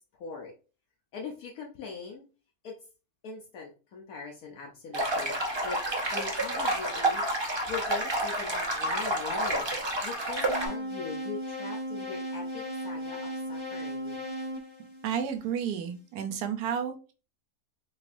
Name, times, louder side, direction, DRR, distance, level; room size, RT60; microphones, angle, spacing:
voice 1, 0.1-0.5 1.1-2.3 2.6-2.8 3.2-5.8 6.1-9.7 10.0-14.2, left 5 dB, 75° left, 0 dB, 1.2 m, -41 dB
sound 1, 4.9-10.7, right 1 dB, 30° right, 0.5 m, -29 dB
sound 2, 10.5-15.6, equal, 35° left, 0.4 m, -37 dB
voice 2, 15.0-17.1, right 8 dB, 85° right, 7 dB, 1.2 m, -31 dB
4.2 x 3.2 x 2.5 m, 0.34 s
omnidirectional pair, 1.6 m